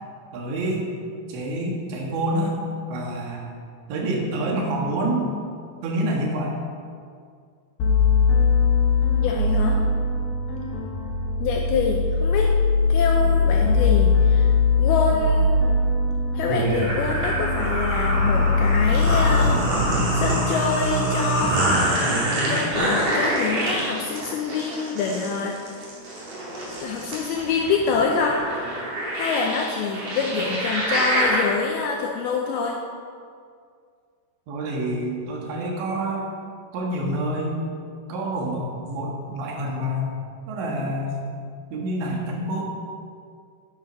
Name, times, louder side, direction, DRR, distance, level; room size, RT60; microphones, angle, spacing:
voice 1, 0.3-0.9 1.3-2.6 2.9-3.4 3.9-5.3 5.8-6.5 34.5-36.3 36.7-37.6 38.1-40.1 40.5-41.2 41.7-42.6, right 1 dB, 80° right, -1 dB, 3.9 m, -27 dB
sound 1, 7.8-19.5, left 4 dB, 65° left, 2.6 m, -21 dB
voice 2, 9.2-9.8 11.4-12.6 12.9-14.5 14.8-15.5 16.4-21.7 22.5-25.6 26.8-28.5 29.1-32.8, left 5 dB, 80° left, 1 dB, 2.3 m, -26 dB
sound 2, 16.5-31.4, right 1 dB, 45° right, 3.0 m, -25 dB
9.5 x 8.8 x 5.2 m, 2.2 s
omnidirectional pair, 5.1 m